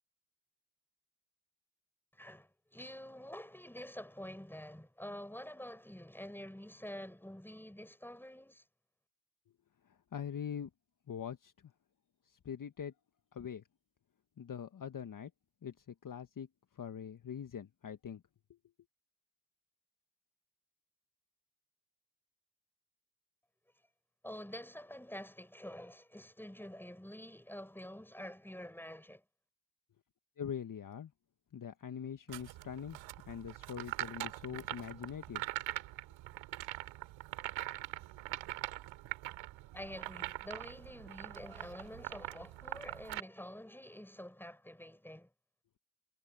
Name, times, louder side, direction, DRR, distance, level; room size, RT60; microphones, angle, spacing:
voice 1, 2.1-8.6 24.2-29.2 39.7-45.3, left 1 dB, 5° left, 7.8 m, -48 dB
voice 2, 9.8-10.7 11.1-11.5 12.2-12.9 13.3-13.6 14.4-15.3 15.6-16.5 16.7-18.2 30.4-31.1 31.5-33.0 33.3-35.4, left 8 dB, 45° left, 1.6 m, -43 dB
sound 1, 32.3-43.2, right 17 dB, 80° right, 3.6 m, -43 dB
supercardioid pair, 55°, 45 cm